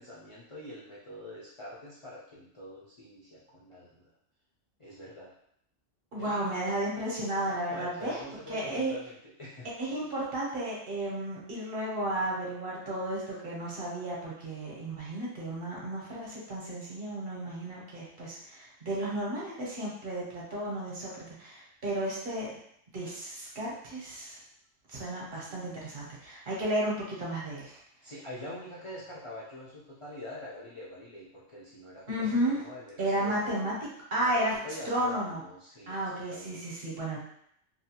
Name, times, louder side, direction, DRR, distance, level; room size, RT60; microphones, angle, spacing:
voice 1, 0.0-4.1 4.8-5.3 6.1-6.7 7.4-9.7 25.4-25.6 28.0-33.8 34.2-36.0 36.3-36.6, left 1 dB, 50° left, -7 dB, 0.4 m, -45 dB
voice 2, 6.1-8.2 8.5-8.9 9.8-22.6 22.9-24.4 24.9-27.8 32.1-32.6 33.0-33.7 34.1-34.5 34.9-35.4 35.9-37.2, right 1 dB, 55° right, -4 dB, 0.9 m, -33 dB
2.7 x 2.3 x 2.8 m, 0.71 s
omnidirectional pair, 1.3 m